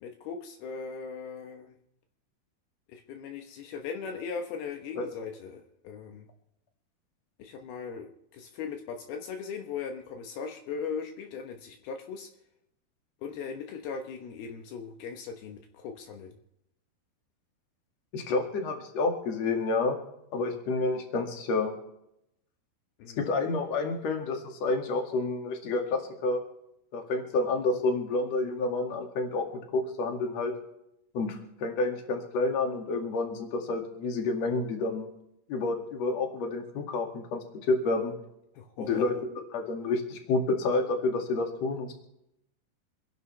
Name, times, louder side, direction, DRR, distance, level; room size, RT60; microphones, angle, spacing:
voice 1, 0.0-1.8 2.9-6.3 7.4-12.3 13.2-16.4 23.0-23.3 38.6-39.0, left 6 dB, 75° left, 4 dB, 3.0 m, -39 dB
voice 2, 18.1-20.0 20.3-21.7 23.2-26.4 26.9-29.4 29.7-30.5 31.1-35.1 35.5-38.1 38.8-41.9, left 3 dB, 50° left, 3 dB, 3.0 m, -29 dB
27.0 x 11.0 x 3.3 m, 0.79 s
omnidirectional pair, 4.5 m